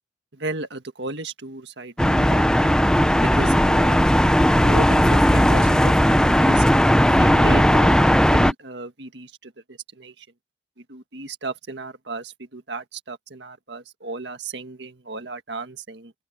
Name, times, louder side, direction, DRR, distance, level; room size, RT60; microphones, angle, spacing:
voice 1, 0.3-2.9 3.2-4.2 4.5-6.7 7.2-10.3 10.9-16.1, right 2 dB, 65° right, 1.8 m, -34 dB
sound 1, 2.0-8.5, equal, 5° left, 0.8 m, -17 dB
open air
head